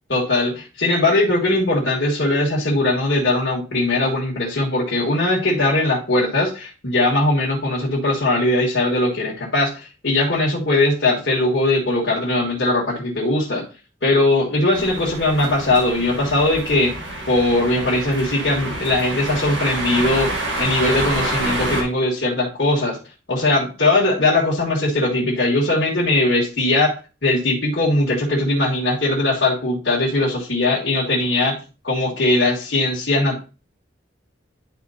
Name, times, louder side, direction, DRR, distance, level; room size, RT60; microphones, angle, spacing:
voice 1, 0.1-13.6 14.0-16.9 17.3-20.3 20.6-23.0 23.3-26.9 27.2-31.5 31.8-33.4, left 2 dB, 65° left, -6 dB, 1.7 m, -20 dB
sound 1, 14.7-21.8, right 1 dB, 70° right, 1.5 m, -27 dB
10.5 x 4.4 x 2.8 m, 0.32 s
head